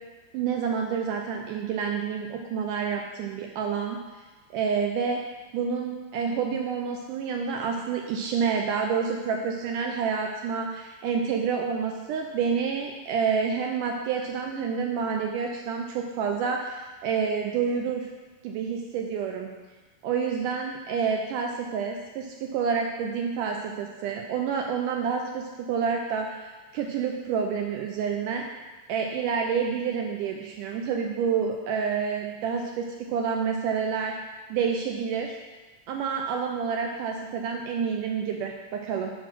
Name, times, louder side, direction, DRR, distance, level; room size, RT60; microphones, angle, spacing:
voice 1, 0.3-4.0 4.5-5.2 5.5-18.1 18.4-19.5 20.0-26.5 26.7-28.4 28.9-34.2 34.5-35.4 35.9-39.1, right 6 dB, 80° right, 2 dB, 2.0 m, -28 dB
11.0 x 4.6 x 6.0 m, 1.2 s
omnidirectional pair, 4.1 m